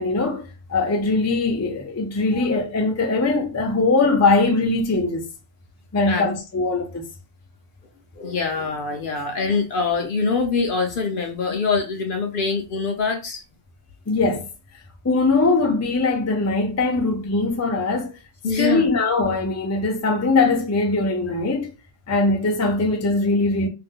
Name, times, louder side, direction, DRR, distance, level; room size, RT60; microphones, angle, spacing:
voice 1, 0.0-5.2 5.9-7.1 14.1-14.5 15.0-18.1 18.6-21.7 22.1-23.7, left 3 dB, 25° left, 0.4 m, -21 dB
voice 2, 8.2-13.4 18.4-18.9, left 4 dB, 60° left, 0.6 m, -24 dB
2.6 x 2.1 x 3.6 m
omnidirectional pair, 1.1 m